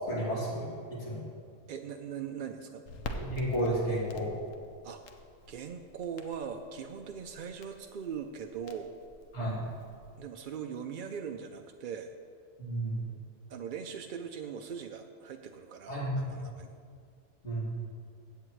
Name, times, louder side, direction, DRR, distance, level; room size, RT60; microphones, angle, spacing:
voice 1, 0.1-1.2 3.1-4.3 9.3-9.6 12.6-13.1 15.9-16.5 17.4-17.8, right 1 dB, 60° left, -7 dB, 3.0 m, -32 dB
voice 2, 1.7-2.9 4.8-5.0 5.5-9.0 10.2-12.1 13.5-16.7, right 7 dB, 60° right, 4 dB, 0.5 m, -40 dB
Crackle, 2.9-10.2, left 2 dB, 85° left, 1.2 m, -47 dB
15.5 x 8.5 x 3.2 m, 2.2 s
omnidirectional pair, 1.3 m